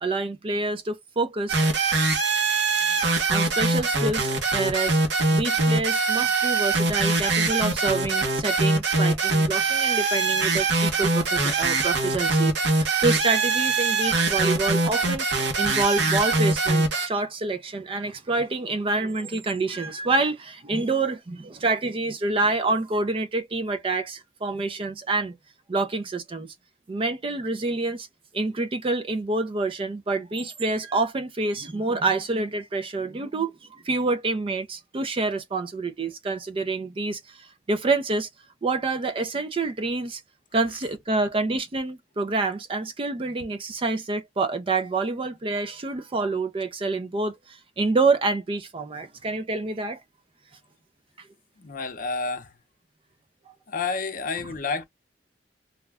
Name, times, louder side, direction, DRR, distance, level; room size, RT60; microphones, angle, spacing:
voice 1, 0.0-1.6 2.9-5.0 5.3-15.3 15.6-25.3 25.7-26.5 26.9-28.1 28.3-38.3 38.6-40.2 40.5-50.0, right 3 dB, 30° right, 0.4 m, -27 dB
sound 1, 1.5-17.1, right 3 dB, 70° right, 0.9 m, -23 dB
voice 2, 51.6-52.5 53.7-54.8, left 4 dB, 50° left, 0.7 m, -29 dB
2.3 x 2.2 x 3.4 m
head